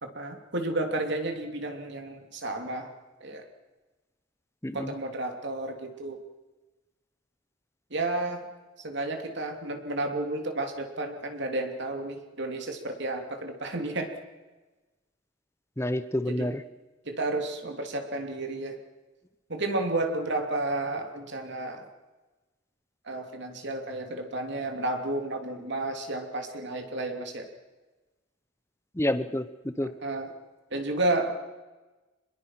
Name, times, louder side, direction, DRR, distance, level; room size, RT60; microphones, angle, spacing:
voice 1, 0.0-2.9 3.2-3.4 4.7-6.2 7.9-8.5 8.8-14.1 16.3-16.5 17.1-18.8 19.5-21.9 23.1-27.5 30.0-30.3 30.7-31.4, right 2 dB, 60° right, 4 dB, 3.0 m, -31 dB
voice 2, 4.6-4.9 15.8-16.6 29.0-29.5 29.8-29.9, left 1 dB, 15° left, 12 dB, 0.9 m, -28 dB
27.0 x 21.5 x 5.9 m, 1.2 s
head